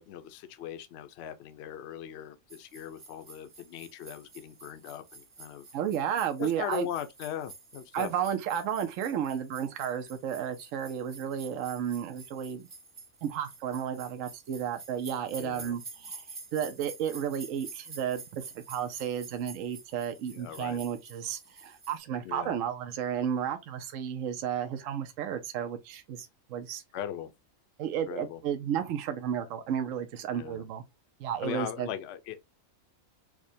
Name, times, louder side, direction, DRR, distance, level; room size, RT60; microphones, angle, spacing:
voice 1, 0.0-5.7 6.4-8.1 15.4-15.8 20.2-20.8 22.2-22.5 26.9-27.3 28.1-28.4 30.4-30.6 31.4-32.5, left 10 dB, 65° left, 0.7 m, -39 dB
sound 1, 2.5-22.0, right 4 dB, 35° right, 0.5 m, -49 dB
voice 2, 5.7-6.9 7.9-12.7 13.2-16.2 16.5-26.8 27.8-30.8 31.2-31.9, right 9 dB, 70° right, 0.9 m, -33 dB
4.7 x 2.1 x 2.6 m
omnidirectional pair, 1.5 m